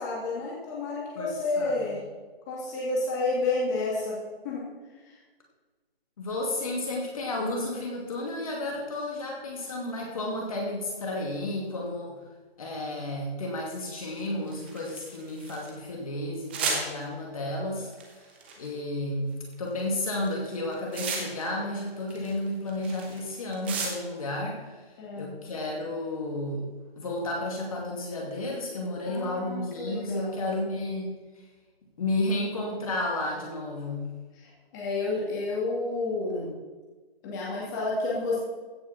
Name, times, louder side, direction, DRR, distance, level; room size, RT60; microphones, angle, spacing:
voice 1, 0.0-2.0 2.5-4.2 4.4-4.6 5.0-5.2 25.0-25.3 29.0-30.4 34.3-36.5 37.2-38.4, left 3 dB, 20° left, -5 dB, 2.5 m, -30 dB
voice 2, 1.2-1.9 6.2-12.2 12.6-17.9 18.6-24.8 25.2-26.7 27.0-31.1 32.0-34.1, left 1 dB, 35° left, -1 dB, 2.4 m, -32 dB
sound 1, 14.2-15.7 16.5-16.8 17.9-18.7 19.5-19.8 20.1-21.6 21.8-24.2, right 4 dB, 10° right, 0.9 m, -34 dB
15.5 x 6.3 x 5.9 m, 1.3 s
hypercardioid pair, 165°, 31 cm